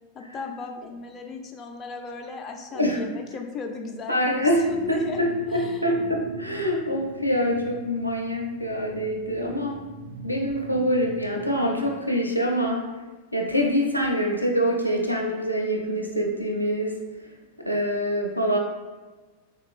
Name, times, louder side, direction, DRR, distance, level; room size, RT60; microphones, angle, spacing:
voice 1, 0.1-4.3 4.6-5.2 5.5-5.8, left 4 dB, 25° left, 3 dB, 0.3 m, -36 dB
voice 2, 4.1-9.8 10.2-12.8 13.3-17.3 17.6-18.6, equal, 90° left, 1 dB, 0.4 m, -25 dB
sound 1, 4.3-11.9, right 3 dB, 60° right, 0.6 m, -42 dB
3.7 x 2.9 x 2.5 m, 1.3 s
figure-of-eight pair, 90°, 0 cm